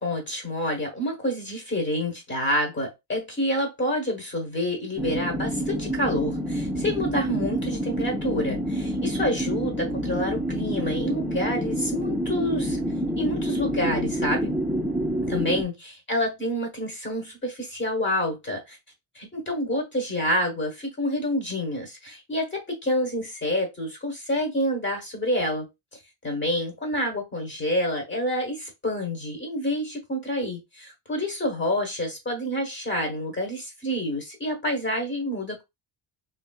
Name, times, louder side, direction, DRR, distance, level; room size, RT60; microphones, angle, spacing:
voice 1, 0.0-12.8 13.2-14.6 15.2-18.8 19.1-25.7 26.2-35.6, left 1 dB, 20° left, 1.2 m, -28 dB
sound 1, 5.0-15.6, equal, ahead, 0.5 m, -28 dB
3.1 x 2.7 x 2.3 m
cardioid pair, 140°, 50 cm